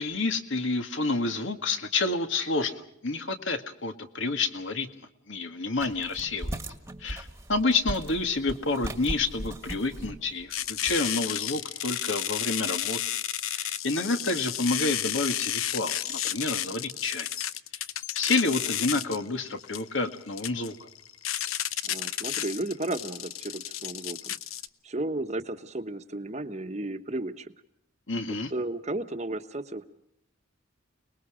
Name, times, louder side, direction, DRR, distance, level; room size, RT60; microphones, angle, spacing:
voice 1, 0.0-6.6 7.0-13.0 13.5-17.3 18.1-20.7 28.1-28.5, left 3 dB, 65° left, 7 dB, 1.9 m, -29 dB
sound 1, 5.8-11.1, right 1 dB, 15° right, 1.5 m, -38 dB
sound 2, 10.5-24.7, left 11 dB, 90° left, 0.9 m, -32 dB
voice 2, 21.8-24.4 24.8-27.5 28.5-29.8, right 2 dB, 35° right, 8 dB, 1.2 m, -33 dB
30.0 x 20.5 x 5.0 m, 0.74 s
head